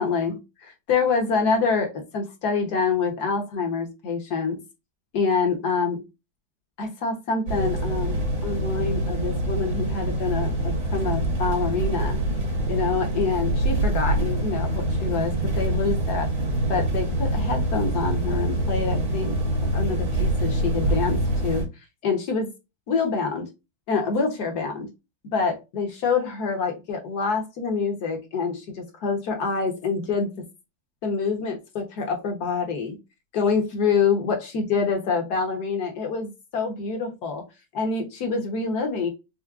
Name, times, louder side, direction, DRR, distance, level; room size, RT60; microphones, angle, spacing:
voice 1, 0.0-4.6 5.1-6.0 6.8-12.2 12.7-16.3 16.7-19.4 19.7-21.6 22.0-22.5 22.9-23.5 23.9-24.9 25.3-30.3 31.0-33.0 33.3-37.4 37.7-39.1, left 5 dB, 55° left, 3 dB, 1.5 m, -26 dB
sound 1, 7.5-21.6, right 1 dB, 80° right, 2.8 m, -25 dB
5.9 x 2.1 x 2.4 m, 0.24 s
omnidirectional pair, 2.2 m